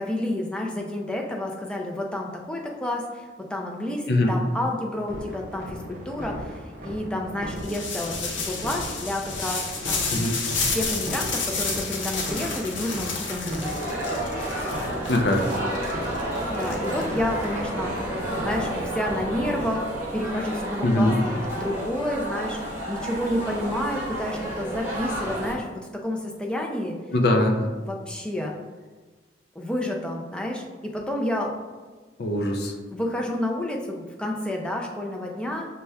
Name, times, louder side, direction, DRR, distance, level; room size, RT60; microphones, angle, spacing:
voice 1, 0.0-6.5 6.8-10.3 10.7-14.0 16.5-17.9 18.4-19.9 20.1-27.0 27.8-28.5 29.6-31.5 32.9-35.7, left 1 dB, 5° left, -1 dB, 0.4 m, -30 dB
sound 1, 5.1-19.6, equal, 45° right, 0.7 m, -37 dB
sound 2, 7.6-17.4, left 4 dB, 90° left, 0.7 m, -31 dB
sound 3, 13.6-25.5, right 1 dB, 15° right, 1.1 m, -31 dB
voice 2, 15.1-15.5 20.8-21.2 27.1-27.7 32.2-32.7, left 1 dB, 55° left, 2 dB, 0.5 m, -21 dB
5.5 x 2.3 x 3.3 m, 1.3 s
head